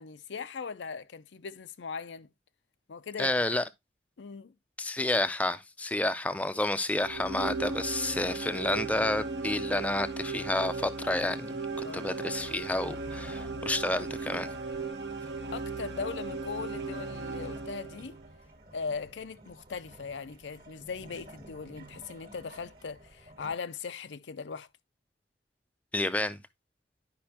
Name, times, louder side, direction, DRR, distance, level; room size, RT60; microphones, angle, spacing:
voice 1, 0.0-2.3 2.9-3.3 4.2-4.5 11.8-12.1 15.5-18.2 18.7-24.7, left 5 dB, 90° left, 0.5 m, -39 dB
voice 2, 3.2-3.6 4.8-11.6 11.9-14.5 25.9-26.4, left 1 dB, 10° left, 0.4 m, -30 dB
sound 1, 7.0-18.3, right 3 dB, 75° right, 1.0 m, -37 dB
sound 2, 11.7-23.5, right 1 dB, 55° right, 1.5 m, -52 dB
10.5 x 5.3 x 2.8 m
head